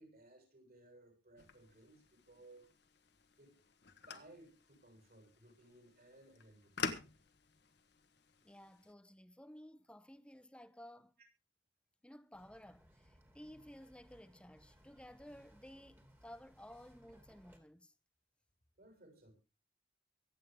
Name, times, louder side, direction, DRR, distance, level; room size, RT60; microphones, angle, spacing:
voice 1, 0.0-2.7 3.4-3.6 4.1-6.8 18.8-19.3, right 1 dB, 55° right, 7.3 m, -61 dB
sound 1, 1.4-8.9, left 5 dB, 60° left, 1.5 m, -48 dB
voice 2, 8.4-11.1 12.0-17.9, equal, 5° left, 0.7 m, -55 dB
Bird vocalization bird call bird song, 12.3-17.6, equal, 10° right, 2.6 m, -65 dB
24.0 x 8.9 x 3.7 m
head